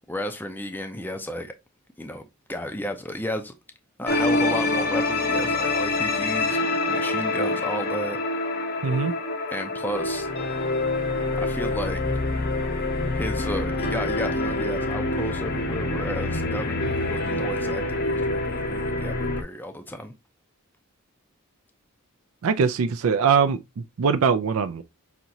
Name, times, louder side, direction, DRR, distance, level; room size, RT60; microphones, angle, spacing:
voice 1, 0.1-1.5 2.0-3.5 4.0-8.2 9.5-10.3 11.4-12.0 13.1-20.1, left 1 dB, 10° left, 0.5 m, -33 dB
sound 1, 4.1-19.4, left 2 dB, 45° left, 0.7 m, -26 dB
voice 2, 22.4-23.6 24.0-24.8, right 6 dB, 70° right, 0.4 m, -21 dB
5.8 x 2.9 x 2.6 m
head